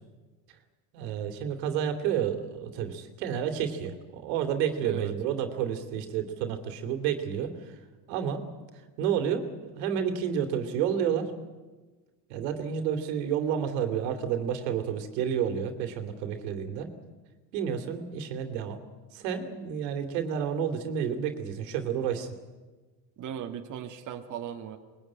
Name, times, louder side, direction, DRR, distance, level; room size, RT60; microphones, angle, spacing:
voice 1, 0.9-7.8 8.1-8.4 9.0-11.3 12.3-16.9 17.5-18.8 19.1-22.3, right 8 dB, 85° right, 7 dB, 2.9 m, -30 dB
voice 2, 4.8-5.1 23.2-24.8, right 9 dB, 40° right, 4 dB, 1.9 m, -37 dB
23.0 x 21.5 x 8.8 m, 1.3 s
supercardioid pair, 125°, 48 cm